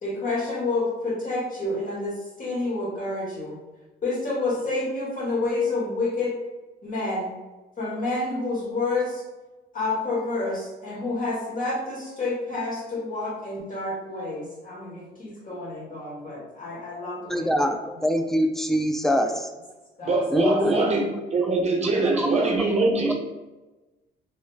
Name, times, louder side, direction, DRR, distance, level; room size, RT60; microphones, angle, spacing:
voice 1, 0.0-3.6 4.0-6.3 6.8-7.3 7.8-9.2 9.7-17.5 19.2-19.3 20.0-20.6, left 2 dB, 40° left, -5 dB, 1.5 m, -29 dB
voice 2, 17.3-19.5 20.3-21.1 21.4-21.5 22.0-22.7, equal, ahead, 5 dB, 0.3 m, -25 dB
voice 3, 20.0-21.1 21.3-23.1, right 3 dB, 30° right, 1 dB, 0.7 m, -22 dB
3.1 x 2.3 x 3.2 m, 1.1 s
cardioid pair, 90°, 21 cm